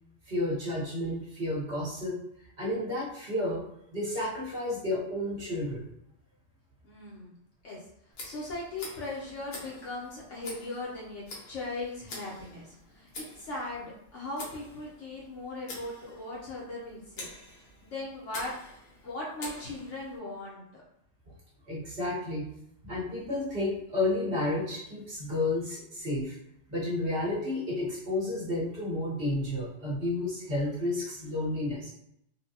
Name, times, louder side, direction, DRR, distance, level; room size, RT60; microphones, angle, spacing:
voice 1, 0.3-2.2 2.6-3.6 3.9-5.8 21.7-22.4 22.8-26.3 26.7-31.9, left 1 dB, 45° right, -8 dB, 1.3 m, -31 dB
voice 2, 6.8-7.3 7.6-17.3 17.6-18.5 19.0-20.8, left 2 dB, 70° left, -5 dB, 1.1 m, -39 dB
Tick, 8.1-20.2, left 2 dB, 85° left, 1.4 m, -47 dB
3.8 x 2.3 x 2.8 m, 0.75 s
omnidirectional pair, 1.3 m